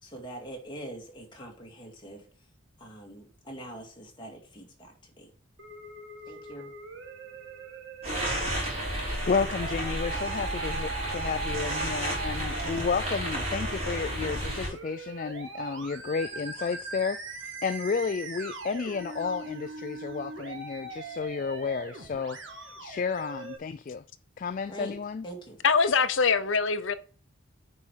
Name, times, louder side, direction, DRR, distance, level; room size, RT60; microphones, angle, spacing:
voice 1, 0.0-2.3 2.8-5.3 6.2-6.7 24.7-25.0 25.2-25.6, right 1 dB, 20° left, 2.2 m, -43 dB
Musical instrument, 5.6-23.6, right 4 dB, 65° right, 1.6 m, -41 dB
sound 1, 8.0-14.7, equal, 30° right, 3.4 m, -32 dB
voice 2, 9.3-17.2 17.6-24.0 24.4-25.3, left 5 dB, 40° left, 0.3 m, -32 dB
voice 3, 25.6-26.9, left 5 dB, 65° left, 0.7 m, -23 dB
9.6 x 4.8 x 4.5 m
head